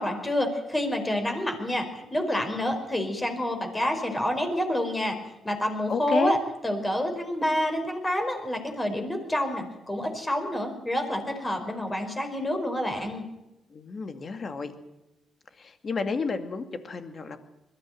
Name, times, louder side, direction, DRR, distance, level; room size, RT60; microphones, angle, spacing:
voice 1, 0.0-5.2 5.4-6.4 6.6-13.2, left 1 dB, 15° left, 5 dB, 5.0 m, -28 dB
voice 2, 5.9-6.4 13.7-14.8 15.5-17.4, left 4 dB, 40° left, 8 dB, 2.4 m, -31 dB
21.0 x 14.5 x 9.2 m, 0.95 s
cardioid pair, 90°, 0 cm